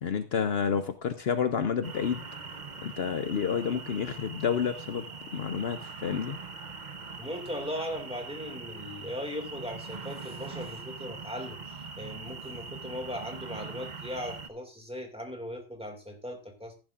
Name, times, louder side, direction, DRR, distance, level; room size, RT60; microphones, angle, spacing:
voice 1, 0.0-2.2 2.8-5.1 5.3-6.4, left 7 dB, 60° left, 9 dB, 0.9 m, -29 dB
sound 1, 1.8-14.5, right 4 dB, 40° right, 1.0 m, -42 dB
voice 2, 7.2-16.7, equal, 5° right, 2 dB, 2.2 m, -38 dB
14.0 x 11.0 x 2.5 m, 0.32 s
omnidirectional pair, 1.2 m